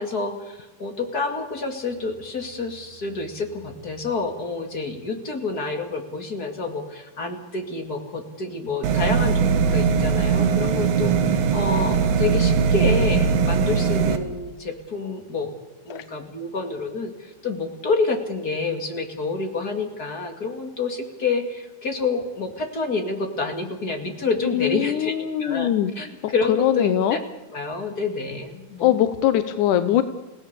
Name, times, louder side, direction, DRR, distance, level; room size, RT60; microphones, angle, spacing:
voice 1, 0.0-15.5 15.9-27.2 27.5-28.9, left 3 dB, 30° left, 4 dB, 2.3 m, -28 dB
sound 1, 8.8-14.2, right 6 dB, 70° right, 3.1 m, -20 dB
voice 2, 24.4-25.9 26.2-27.2 28.8-30.0, left 11 dB, 70° left, 10 dB, 2.1 m, -21 dB
30.0 x 17.0 x 6.9 m, 1.1 s
omnidirectional pair, 4.3 m